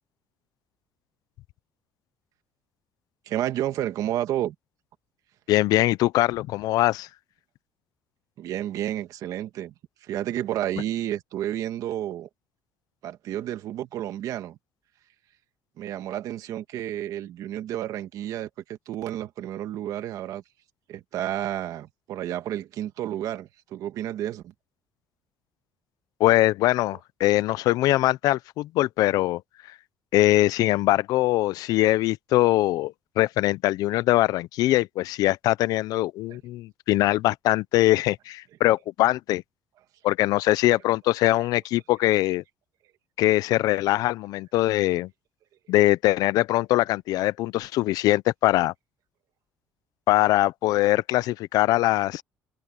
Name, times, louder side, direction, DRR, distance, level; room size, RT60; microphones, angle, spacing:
voice 1, 3.3-4.6 8.4-9.7 10.0-12.3 13.0-14.6 15.8-20.4 20.9-24.5 36.3-36.4, right 12 dB, 60° right, 1.7 m, -31 dB
voice 2, 5.5-7.1 26.2-29.4 30.1-39.4 40.0-42.4 43.2-45.1 45.7-48.7 50.1-52.2, left 16 dB, 70° left, 0.5 m, -22 dB
cardioid pair, 165°, 7 cm